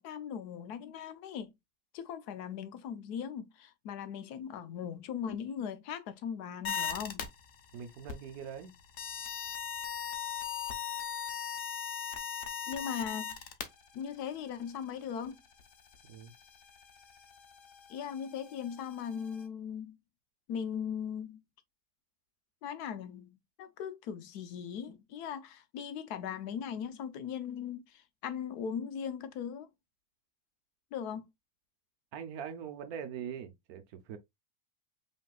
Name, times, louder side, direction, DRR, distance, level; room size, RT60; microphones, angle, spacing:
voice 1, 0.0-1.5 1.9-7.3 12.7-13.6 13.9-15.4 17.9-20.0 20.5-21.4 22.6-29.7 30.9-31.3, left 8 dB, 85° left, 1.2 m, -39 dB
sound 1, 6.6-7.3 7.9-8.3 9.0-13.6 15.3-15.4 15.6-15.7 15.9-19.4, left 7 dB, 60° left, 1.1 m, -38 dB
voice 2, 7.7-8.7 16.0-16.3 32.1-34.2, right 8 dB, 75° right, 1.2 m, -42 dB
5.3 x 3.2 x 2.3 m
omnidirectional pair, 1.6 m